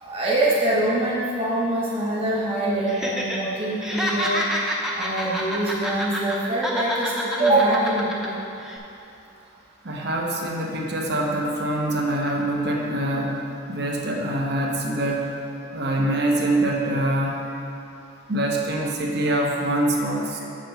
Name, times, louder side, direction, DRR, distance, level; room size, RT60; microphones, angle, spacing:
voice 1, 0.0-4.4 4.9-8.4, right 1 dB, 30° right, -6 dB, 1.4 m, -24 dB
Laughter, 2.9-3.4 3.7-6.4 6.6-8.3 8.6-8.8, equal, ahead, 0.7 m, -27 dB
voice 2, 9.8-15.3 15.7-17.4 18.3-20.4, right 1 dB, 55° right, -1 dB, 0.9 m, -24 dB
7.5 x 6.0 x 5.0 m, 2.7 s
head